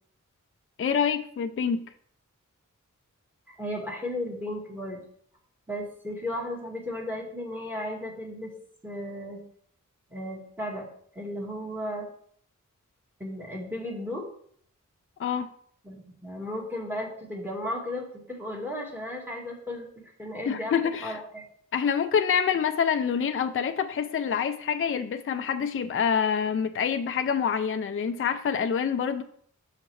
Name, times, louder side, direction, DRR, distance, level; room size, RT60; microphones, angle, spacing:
voice 1, 0.8-1.9 15.2-15.5 20.5-21.2 21.7-29.2, left 7 dB, 40° left, 9 dB, 0.4 m, -26 dB
voice 2, 3.6-5.0 5.7-8.5 8.8-9.4 10.1-10.9 11.1-12.1 13.2-14.2 15.8-21.4, left 1 dB, 5° right, 0 dB, 1.6 m, -35 dB
6.1 x 5.7 x 3.2 m, 0.63 s
wide cardioid pair, 70°, 32 cm